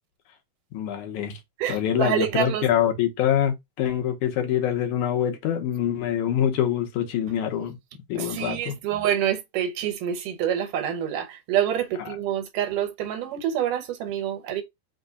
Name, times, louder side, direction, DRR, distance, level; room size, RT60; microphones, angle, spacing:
voice 1, 0.7-1.4 1.7-7.8 8.1-8.8, left 10 dB, 75° left, 2.3 m, -25 dB
voice 2, 1.6-2.7 8.2-14.6, right 10 dB, 85° right, 2.4 m, -27 dB
5.4 x 2.3 x 3.8 m
omnidirectional pair, 3.6 m